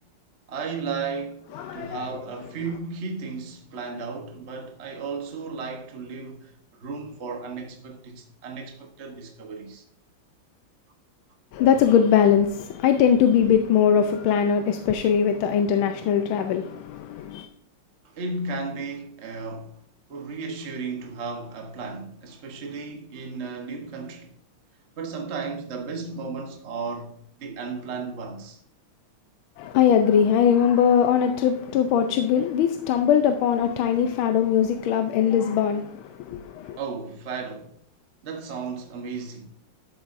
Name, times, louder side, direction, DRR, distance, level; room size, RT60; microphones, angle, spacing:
voice 1, 0.5-6.5 6.8-9.8 18.0-19.8 20.1-24.3 25.0-28.6 36.7-37.7 38.2-39.5, right 4 dB, 40° right, 1.0 m, -34 dB
voice 2, 1.5-2.0 11.5-17.5 29.6-36.8, left 8 dB, 75° left, 1.4 m, -21 dB
11.5 x 8.0 x 2.6 m
omnidirectional pair, 2.3 m